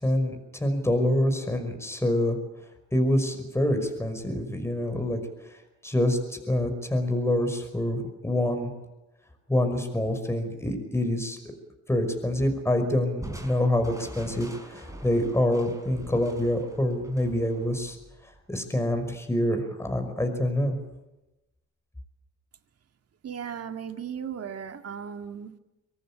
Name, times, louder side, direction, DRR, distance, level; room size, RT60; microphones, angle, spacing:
voice 1, 0.0-2.4 2.9-5.2 5.8-8.7 9.5-11.4 11.9-18.0 18.5-20.8, left 1 dB, 10° left, 6 dB, 5.4 m, -26 dB
Crushing, 13.2-18.6, right 1 dB, 10° right, 5.8 m, -44 dB
voice 2, 23.2-25.6, right 7 dB, 55° right, 7 dB, 2.0 m, -36 dB
24.0 x 18.0 x 8.7 m, 1.0 s
cardioid pair, 90°, 30 cm